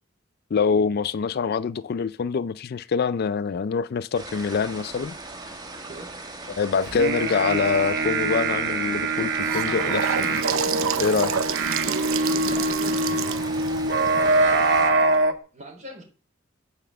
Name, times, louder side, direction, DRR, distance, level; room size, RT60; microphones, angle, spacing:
voice 1, 0.5-5.2 6.6-10.4 11.0-11.3, left 5 dB, 50° left, 0.3 m, -25 dB
sound 1, 4.1-14.9, right 2 dB, 20° right, 1.5 m, -39 dB
sound 2, 6.9-15.3, right 2 dB, 60° right, 1.1 m, -24 dB
Gurgling / Sink (filling or washing) / Bathtub (filling or washing), 9.1-15.2, right 7 dB, 85° right, 0.7 m, -30 dB
voice 2, 12.3-13.0 14.1-14.7 15.5-16.0, right 2 dB, 35° right, 3.9 m, -40 dB
8.7 x 5.0 x 7.5 m
head